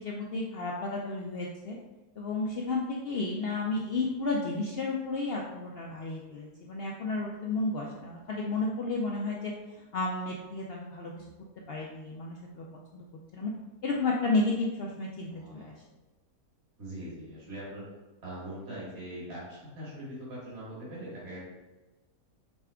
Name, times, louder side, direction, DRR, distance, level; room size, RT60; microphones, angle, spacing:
voice 1, 0.0-1.8 2.2-9.5 9.9-11.2 11.7-12.7 12.9-13.0 13.3-13.5 13.8-15.7, left 3 dB, 80° left, -2 dB, 0.5 m, -32 dB
voice 2, 15.3-15.7 16.8-17.8 18.2-21.4, right 1 dB, 50° right, -8 dB, 1.7 m, -42 dB
5.1 x 3.6 x 2.2 m, 1.1 s
omnidirectional pair, 1.6 m